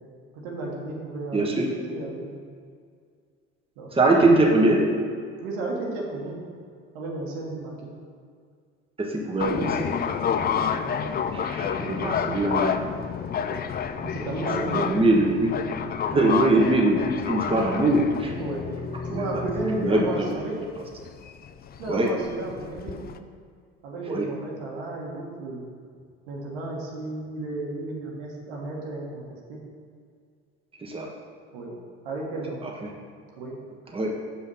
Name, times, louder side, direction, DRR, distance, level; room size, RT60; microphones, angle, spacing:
voice 1, 0.3-1.5 1.9-2.4 3.8-3.9 5.4-6.4 6.9-7.9 10.8-11.4 14.0-14.9 16.1-16.3 18.4-18.7 19.0-20.6 21.8-23.0 23.8-25.6 26.3-29.6 31.5-31.8 32.0-32.6 33.4-33.6, right 2 dB, 75° right, -2 dB, 1.6 m, -33 dB
voice 2, 1.3-1.7 3.9-4.8 9.0-9.9 11.3-12.8 14.6-15.5 16.1-18.3 19.1-19.3 19.8-20.0 21.9-22.1 24.1-24.3 30.8-31.1 32.6-32.9 33.9-34.2, right 2 dB, 15° right, -1 dB, 1.3 m, -22 dB
sound 1, 9.4-23.2, left 7 dB, 30° left, 0.4 m, -30 dB
5.7 x 5.5 x 5.6 m, 2.1 s
hypercardioid pair, 65°, 32 cm